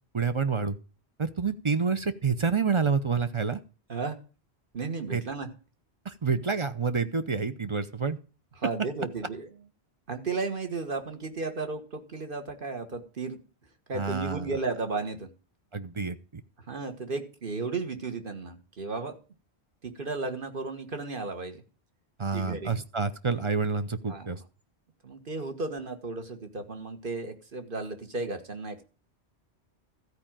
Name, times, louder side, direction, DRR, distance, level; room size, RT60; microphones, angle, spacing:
voice 1, 0.1-0.8 1.2-3.6 5.1-5.2 6.0-8.2 13.9-14.5 15.7-16.4 22.2-24.4, right 5 dB, 30° right, 11 dB, 0.7 m, -28 dB
voice 2, 4.7-5.5 8.6-9.5 10.1-13.4 13.9-15.3 16.7-19.1 19.8-21.6 22.3-22.7 24.1-24.3 25.0-28.8, right 3 dB, 50° right, 6 dB, 1.7 m, -34 dB
13.5 x 5.0 x 8.9 m, 0.36 s
omnidirectional pair, 1.1 m